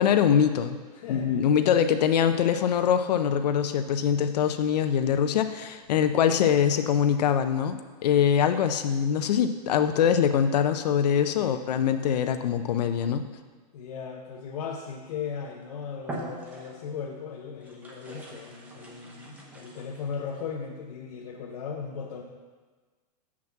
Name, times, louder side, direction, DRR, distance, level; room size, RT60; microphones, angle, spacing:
voice 1, 0.0-0.8 1.1-13.2, left 8 dB, 85° left, 8 dB, 0.6 m, -23 dB
voice 2, 0.9-1.8 11.4-11.7 12.7-12.8 13.7-22.2, left 6 dB, 65° left, -1 dB, 1.0 m, -37 dB
sound 1, 15.3-15.6 16.0-17.0 17.6-20.4, right 1 dB, 10° right, 0.8 m, -42 dB
6.1 x 6.0 x 7.2 m, 1.4 s
supercardioid pair, 175°, 20 cm